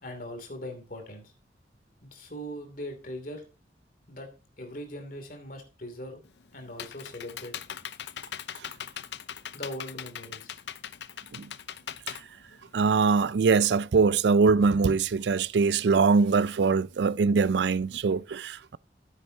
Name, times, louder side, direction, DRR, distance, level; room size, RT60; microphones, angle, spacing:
voice 1, 0.0-1.3 2.0-3.4 4.1-4.3 4.6-6.2 6.5-7.5 9.5-10.6, equal, 50° left, 2.7 m, -40 dB
Computer keyboard, 6.2-13.1, left 9 dB, 75° left, 0.5 m, -40 dB
voice 2, 12.7-18.8, right 5 dB, 75° right, 0.4 m, -23 dB
14.0 x 8.0 x 2.8 m
head